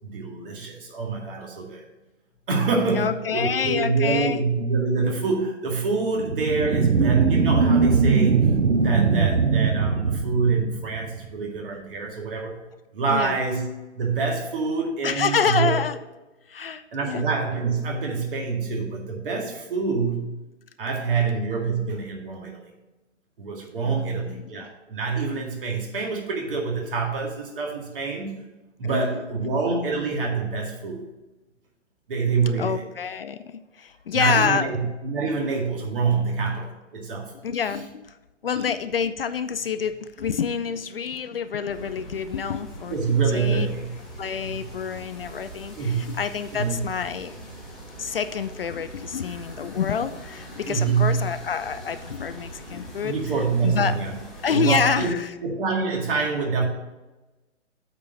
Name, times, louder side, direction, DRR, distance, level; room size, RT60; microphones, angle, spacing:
voice 1, 0.0-1.8 2.5-8.6 8.8-12.6 12.9-13.6 14.0-15.8 16.9-20.3 20.8-22.7 23.4-28.4 28.8-31.0 32.1-32.8 34.1-37.3 38.5-38.6 42.9-43.9 44.4-44.6 45.8-46.2 46.5-46.9 50.7-51.2 53.0-54.1 54.5-55.1 55.4-56.6, right 4 dB, 45° right, 0 dB, 2.1 m, -26 dB
voice 2, 2.9-4.4 13.1-13.4 15.0-16.0 16.5-17.2 23.8-24.7 28.8-29.6 32.6-34.7 37.4-38.1 38.4-43.7 44.2-47.4 48.0-53.1 53.6-53.9 54.4-55.3, left 7 dB, 50° left, 11 dB, 0.5 m, -27 dB
sound 1, 6.2-11.2, right 4 dB, 80° right, 0.8 m, -21 dB
sound 2, 41.7-55.1, right 1 dB, ahead, 0.6 m, -42 dB
8.4 x 4.5 x 5.8 m, 1.1 s
figure-of-eight pair, 130°, 37 cm